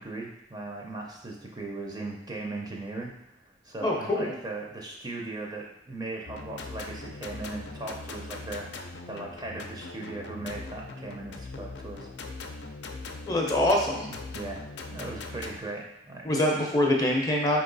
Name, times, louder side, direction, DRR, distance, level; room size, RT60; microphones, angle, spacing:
voice 1, 0.0-3.1 3.4-12.1 14.1-16.3, right 2 dB, 20° right, -1 dB, 0.5 m, -38 dB
voice 2, 3.8-4.3 13.2-14.1 16.2-17.6, left 1 dB, 20° left, 0 dB, 0.6 m, -24 dB
sound 1, 6.3-15.6, left 3 dB, 70° left, 0.5 m, -40 dB
4.1 x 2.9 x 3.9 m, 0.92 s
head